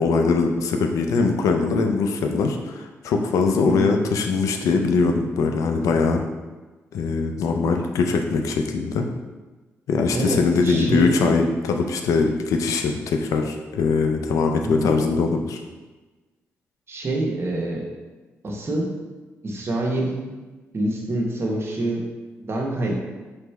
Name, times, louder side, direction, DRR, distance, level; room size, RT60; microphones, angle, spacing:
voice 1, 0.0-6.2 6.9-9.1 9.9-15.6, left 4 dB, 80° left, 4 dB, 0.4 m, -22 dB
voice 2, 10.1-11.3 14.6-14.9 16.9-17.9 18.4-18.9 19.4-20.2 20.7-22.0 22.4-22.9, right 1 dB, 50° right, -1 dB, 1.0 m, -26 dB
3.3 x 3.0 x 4.5 m, 1.2 s
supercardioid pair, 60°, 6 cm